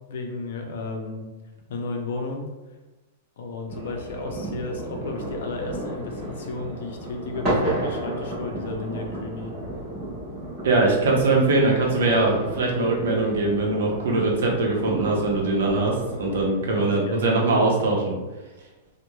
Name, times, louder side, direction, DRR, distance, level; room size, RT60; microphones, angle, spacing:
voice 1, 0.1-1.3 1.7-2.5 3.4-9.5 16.6-17.3, left 3 dB, 65° left, 3 dB, 0.4 m, -33 dB
sound 1, 3.7-16.5, right 1 dB, 20° right, 1.1 m, -33 dB
voice 2, 10.6-18.1, right 2 dB, 80° right, -1 dB, 0.7 m, -22 dB
2.9 x 2.0 x 2.2 m, 1.1 s
supercardioid pair, 170°, 0 cm